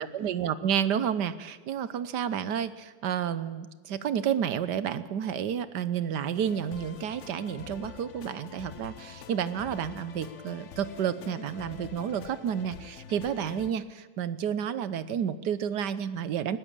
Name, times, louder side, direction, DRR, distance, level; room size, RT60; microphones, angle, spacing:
voice 1, 0.0-16.6, right 8 dB, 60° right, 14 dB, 1.4 m, -30 dB
sound 1, 6.3-13.7, left 8 dB, 55° left, 0.9 m, -46 dB
20.5 x 16.5 x 8.9 m, 1.3 s
omnidirectional pair, 2.2 m